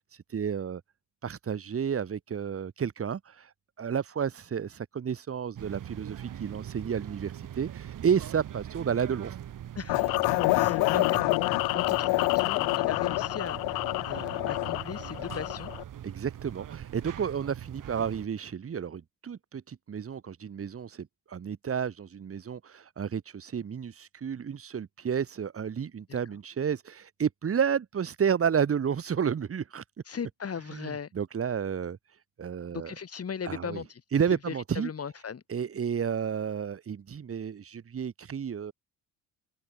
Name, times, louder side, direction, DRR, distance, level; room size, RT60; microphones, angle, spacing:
voice 1, 0.3-0.8 1.2-3.5 3.8-9.4 16.0-29.8 30.7-32.0 32.4-32.9 33.4-33.8 34.1-34.9 35.5-38.7, right 7 dB, 40° right, 2.0 m, -31 dB
sound 1, 5.6-18.3, right 10 dB, 65° right, 7.4 m, -42 dB
voice 2, 9.8-10.2 10.5-11.2 11.7-13.8 14.0-15.7 26.1-26.2 30.1-31.1 32.7-34.0 34.5-35.4, left 6 dB, 40° left, 5.4 m, -38 dB
sound 2, 9.9-15.8, left 24 dB, 85° left, 1.8 m, -27 dB
supercardioid pair, 70°, 35 cm